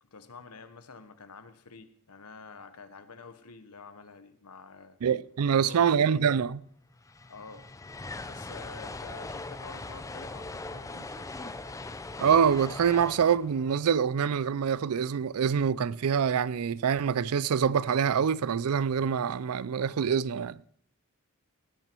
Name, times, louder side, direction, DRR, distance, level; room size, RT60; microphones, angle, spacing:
voice 1, 0.0-5.0 5.4-5.9 7.3-7.7 8.2-11.5, left 4 dB, 85° left, 1.1 m, -48 dB
voice 2, 5.0-6.6 12.2-20.6, right 7 dB, 70° right, 0.4 m, -25 dB
sound 1, 6.5-6.6 6.8-15.0, left 2 dB, 15° left, 0.5 m, -41 dB
18.5 x 9.1 x 4.5 m
head